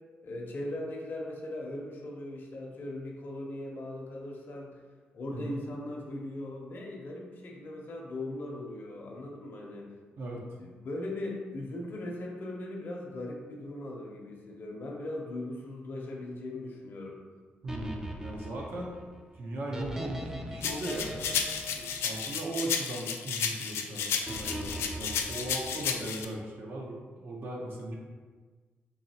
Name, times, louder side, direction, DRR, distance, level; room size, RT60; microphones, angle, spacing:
voice 1, 0.2-4.8 5.1-9.9 10.6-17.2 21.6-22.0, left 1 dB, 55° left, -1 dB, 0.6 m, -39 dB
voice 2, 17.6-19.0 19.3-21.1 22.0-27.9, right 1 dB, 55° right, -2 dB, 0.6 m, -38 dB
sound 1, 17.7-23.0 24.3-26.2, right 1 dB, 10° right, 0.3 m, -41 dB
sound 2, 20.6-26.2, left 7 dB, 90° left, 0.3 m, -32 dB
4.0 x 2.8 x 2.8 m, 1.4 s
cardioid pair, 95°, 4 cm